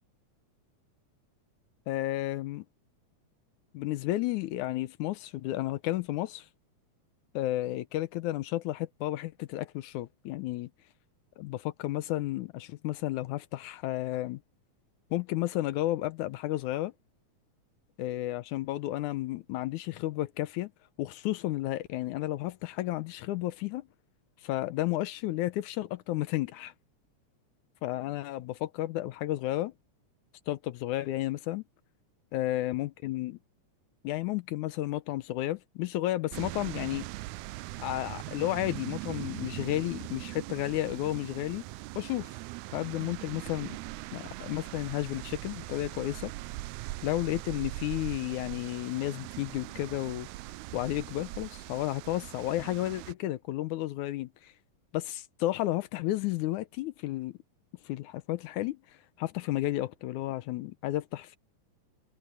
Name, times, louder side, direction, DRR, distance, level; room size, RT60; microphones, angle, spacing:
voice 1, 1.9-2.6 3.7-6.5 7.3-10.7 11.4-14.4 15.1-16.9 18.0-20.7 21.0-23.9 24.4-26.7 27.8-29.7 30.5-31.6 32.3-33.4 34.0-37.1 37.8-41.6 42.0-42.3 42.7-43.8 44.1-46.3 47.0-50.3 50.7-54.5 54.9-57.4 57.8-58.8 59.2-61.4, left 15 dB, 85° left, 2.2 m, -32 dB
sound 1, 36.3-53.1, right 19 dB, 80° right, 1.9 m, -41 dB
omnidirectional pair, 3.5 m